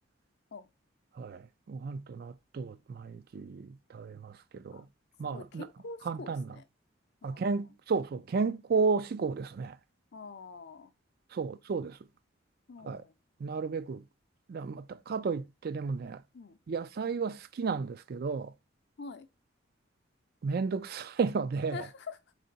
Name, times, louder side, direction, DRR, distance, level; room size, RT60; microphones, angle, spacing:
voice 1, 1.1-4.9 5.2-5.7 6.1-6.6 7.2-9.8 11.3-12.0 12.8-13.0 13.4-14.0 14.5-16.2 16.7-18.5 20.4-21.9, right 4 dB, 50° right, 0.3 m, -33 dB
voice 2, 5.2-6.6 7.2-7.5 10.1-10.9 12.7-13.1 16.3-16.6 19.0-19.3 21.7-22.2, left 4 dB, 55° left, 0.5 m, -45 dB
3.6 x 3.3 x 4.0 m
head